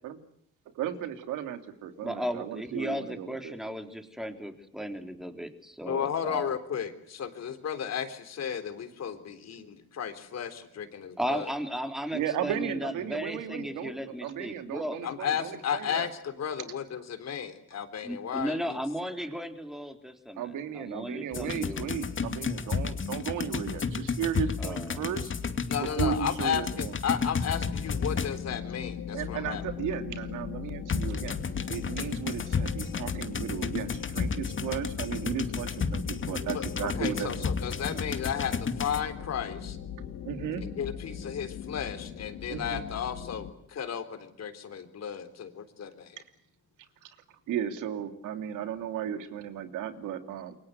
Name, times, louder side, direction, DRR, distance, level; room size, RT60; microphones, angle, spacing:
voice 1, 0.7-3.5 12.1-16.1 19.2-19.3 20.4-25.3 25.7-27.0 29.1-31.4 31.7-37.5 40.2-40.6 42.5-42.8 47.0-47.1 47.5-50.6, right 9 dB, 85° right, 7 dB, 2.9 m, -35 dB
voice 2, 2.0-6.5 11.2-15.0 18.0-20.4 20.7-21.9 24.6-25.0, equal, ahead, 5 dB, 3.8 m, -35 dB
voice 3, 5.9-11.5 15.0-18.8 25.7-29.6 36.5-39.8 40.6-46.2, left 8 dB, 60° left, 9 dB, 3.8 m, -34 dB
sound 1, 21.3-28.6 30.9-39.0, left 5 dB, 40° left, 2.5 m, -32 dB
sound 2, 27.3-43.5, left 8 dB, 75° left, 3.4 m, -40 dB
28.0 x 24.0 x 8.1 m, 0.69 s
cardioid pair, 90°, 30 cm